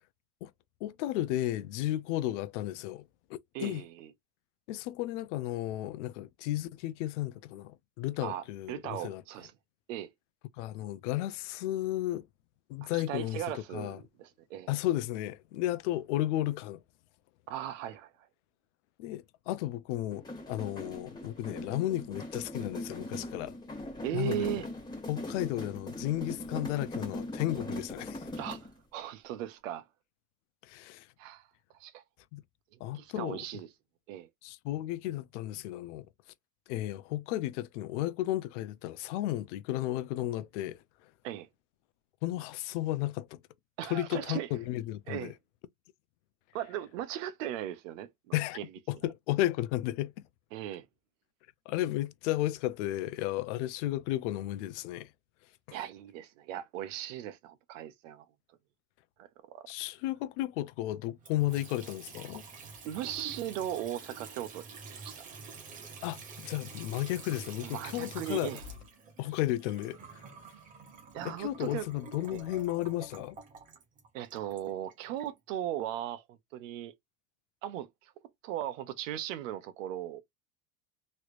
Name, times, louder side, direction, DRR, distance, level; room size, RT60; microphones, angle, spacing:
voice 1, 0.8-3.8 4.7-9.2 10.6-12.3 12.7-14.0 14.7-16.8 19.0-23.6 24.1-24.6 25.1-28.3 30.6-31.1 32.3-32.4 32.8-33.4 34.4-36.1 36.7-40.8 42.2-43.4 43.9-45.3 48.3-48.6 48.9-50.1 51.7-55.1 55.7-55.8 59.7-62.4 66.0-68.5 69.2-70.2 71.2-73.4, left 15 dB, 70° left, 0.5 m, -33 dB
voice 2, 3.5-4.1 8.2-9.5 9.9-10.1 12.8-14.7 17.5-18.1 24.0-24.7 28.4-29.8 31.2-31.5 31.8-32.0 32.9-33.7 34.1-34.3 41.2-41.5 43.8-44.5 45.1-45.3 46.5-48.1 48.5-48.7 50.5-50.9 55.7-58.3 59.2-59.7 62.8-65.2 67.6-68.6 71.1-71.9 72.3-72.4 74.1-76.9 77.6-78.1 78.4-80.2, right 11 dB, 85° right, 0.9 m, -38 dB
sound 1, 20.1-28.8, left 1 dB, 10° left, 1.4 m, -40 dB
Water tap faucet / Sink (filling or washing) / Trickle dribble, 61.2-75.3, right 4 dB, 20° right, 0.8 m, -48 dB
3.1 x 3.1 x 2.5 m
cardioid pair, 175°, 37 cm